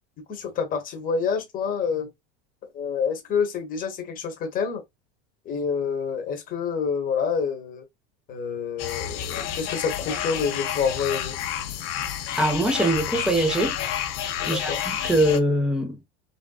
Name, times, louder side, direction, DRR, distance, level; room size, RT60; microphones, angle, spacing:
voice 1, 0.3-2.1 2.7-4.8 5.4-7.8 8.3-11.4 14.4-14.8, left 6 dB, 25° left, 1.0 m, -27 dB
sound 1, 8.8-15.4, left 10 dB, 45° left, 0.6 m, -30 dB
voice 2, 12.4-13.8 14.5-16.1, right 1 dB, 5° right, 0.5 m, -23 dB
3.4 x 2.6 x 2.3 m
supercardioid pair, 160°, 31 cm